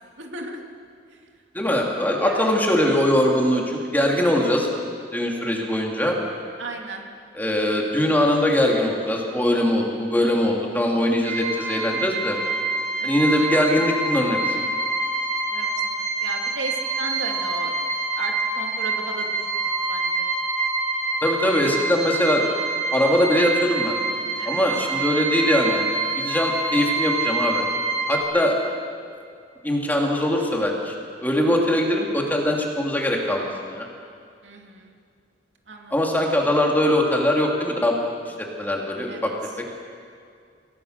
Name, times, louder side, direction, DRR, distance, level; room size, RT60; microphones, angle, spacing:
voice 1, 0.0-0.6 2.2-2.5 6.6-7.1 13.0-13.2 15.5-17.7 18.1-19.3 19.6-20.3 24.4-24.6 31.5-31.6 34.4-34.9 35.7-35.9 39.1-39.3, right 2 dB, 85° right, 1 dB, 2.6 m, -35 dB
voice 2, 1.5-4.7 5.1-6.2 7.3-12.4 13.0-14.6 21.2-22.4 22.9-24.0 24.4-25.9 26.2-27.6 28.1-28.6 29.0-29.1 29.6-30.9 31.2-33.8 35.9-39.3, left 1 dB, 10° left, -1 dB, 2.8 m, -22 dB
sound 1, 11.2-28.2, right 3 dB, 50° right, 5.1 m, -26 dB
27.0 x 17.5 x 6.6 m, 2.2 s
head